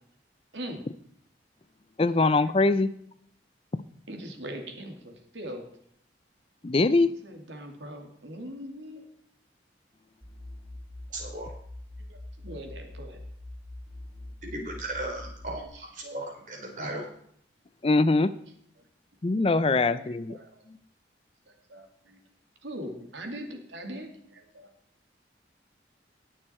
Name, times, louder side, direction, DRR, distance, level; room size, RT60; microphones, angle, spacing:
voice 1, 2.0-2.9 6.6-7.1 17.8-18.3 19.2-20.4, left 3 dB, 30° left, 14 dB, 0.4 m, -22 dB
voice 2, 4.1-5.6 7.2-9.1 11.1-11.2 12.1-13.2 15.6-16.2 18.2-18.3 19.7-20.6 21.5-22.2 22.6-24.7, equal, 85° right, 4 dB, 2.4 m, -41 dB
sound 1, 10.2-15.7, left 1 dB, 5° right, 1.7 m, -43 dB
voice 3, 11.1-11.5 14.5-17.1, right 1 dB, 45° right, 0 dB, 3.9 m, -36 dB
19.5 x 6.6 x 4.3 m, 0.68 s
head